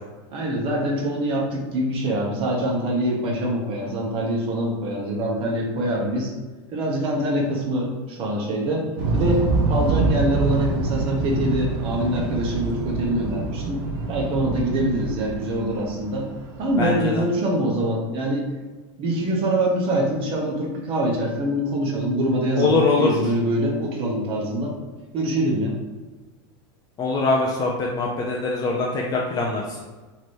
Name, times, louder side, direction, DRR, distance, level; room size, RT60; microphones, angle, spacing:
voice 1, 0.3-6.3 6.7-8.9 9.1-13.8 14.1-16.3 16.6-18.5 19.0-24.7 25.1-25.8, right 1 dB, 35° right, -1 dB, 1.0 m, -24 dB
sound 1, 9.0-17.0, right 3 dB, 65° right, 0.8 m, -26 dB
voice 2, 16.8-17.2 22.6-23.1 27.0-29.8, left 3 dB, 25° left, -2 dB, 0.5 m, -22 dB
3.2 x 3.0 x 4.3 m, 1.2 s
supercardioid pair, 140°, 15 cm